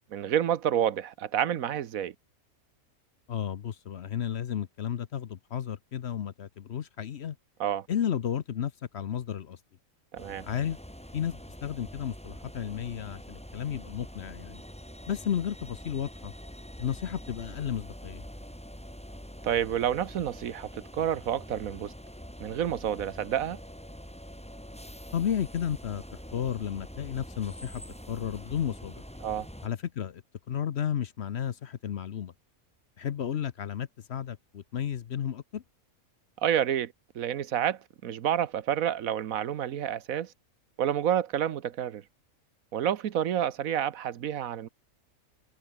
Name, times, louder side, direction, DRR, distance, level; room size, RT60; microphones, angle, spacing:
voice 1, 0.1-2.1 7.6-7.9 10.1-10.5 19.4-21.9 22.4-23.6 29.2-29.5 36.4-40.3 40.8-42.0 42.7-44.7, right 10 dB, 75° right, 1.3 m, -29 dB
voice 2, 3.3-7.4 7.9-9.6 10.4-10.8 11.1-14.6 15.1-16.3 16.8-18.2 25.1-26.0 26.3-27.8 28.1-28.9 29.6-30.2 30.5-32.3 33.0-35.6, left 9 dB, 55° left, 1.0 m, -33 dB
sound 1, 10.2-29.7, equal, 5° left, 3.2 m, -45 dB
omnidirectional pair, 1.5 m